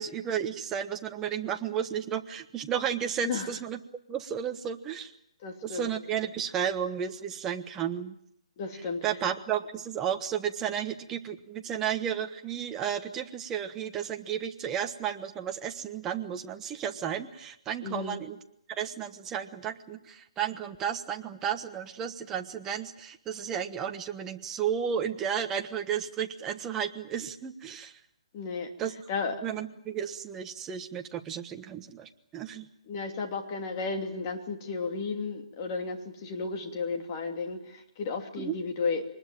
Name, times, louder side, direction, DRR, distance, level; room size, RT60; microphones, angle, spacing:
voice 1, 0.0-3.8 4.1-5.1 5.6-8.2 9.0-18.4 18.7-27.9 28.8-28.9 29.4-32.7 38.4-38.5, right 8 dB, 10° right, 6 dB, 1.2 m, -33 dB
voice 2, 5.4-5.9 8.6-9.0 17.8-18.2 28.3-28.7 29.1-29.4 32.9-39.0, left 4 dB, 30° left, 4 dB, 2.9 m, -33 dB
24.0 x 20.0 x 9.1 m, 0.75 s
hypercardioid pair, 160°, 3 cm